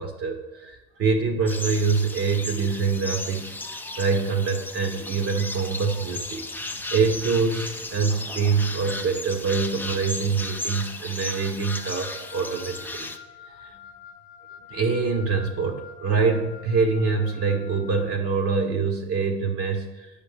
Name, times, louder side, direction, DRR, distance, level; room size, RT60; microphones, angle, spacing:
voice 1, 0.0-13.1 13.5-13.8 14.7-20.1, right 5 dB, 40° right, 4 dB, 1.0 m, -25 dB
sound 1, 1.5-13.2, left 2 dB, 5° left, 0.4 m, -35 dB
Wind instrument woodwind instrument, 11.7-18.2, left 8 dB, 75° left, 0.6 m, -46 dB
8.6 x 5.0 x 3.3 m, 1.1 s
hypercardioid pair, 70°, 34 cm